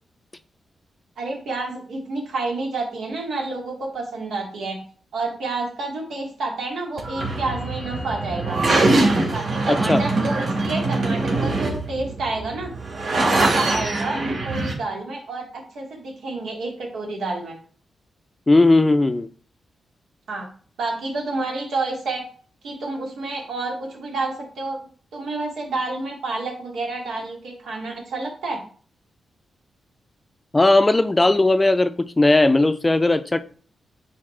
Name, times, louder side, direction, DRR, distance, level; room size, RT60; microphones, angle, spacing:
voice 1, 1.2-4.8 5.1-8.6 9.3-12.7 13.1-17.6 20.3-20.5 20.8-22.2 22.6-24.8 25.1-28.6, right 3 dB, 85° right, 2.3 m, -29 dB
sound 1, 7.0-14.7, right 2 dB, 65° right, 2.6 m, -23 dB
voice 2, 9.7-10.0 18.5-19.3 30.5-33.4, left 2 dB, 20° left, 0.5 m, -17 dB
9.5 x 4.2 x 3.3 m
cardioid pair, 100°, 0 cm